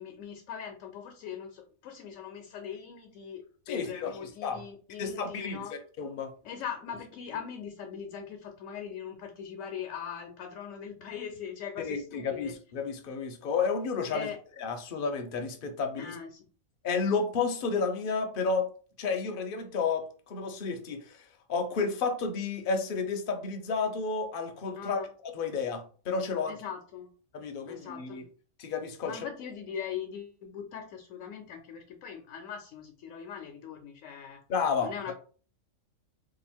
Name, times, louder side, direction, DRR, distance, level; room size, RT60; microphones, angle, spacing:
voice 1, 0.0-5.7 6.4-12.5 14.1-14.4 16.0-16.4 24.8-25.1 26.5-27.1 27.7-28.2 29.0-34.4 34.8-35.1, left 8 dB, 75° left, 0.9 m, -41 dB
voice 2, 3.7-4.6 5.0-5.6 6.0-6.3 11.8-14.3 14.6-16.2 16.8-18.7 19.0-25.0 25.3-26.6 27.3-28.2 28.6-29.3 34.5-35.1, left 5 dB, 50° left, 0.7 m, -31 dB
2.8 x 2.5 x 4.3 m
omnidirectional pair, 1.4 m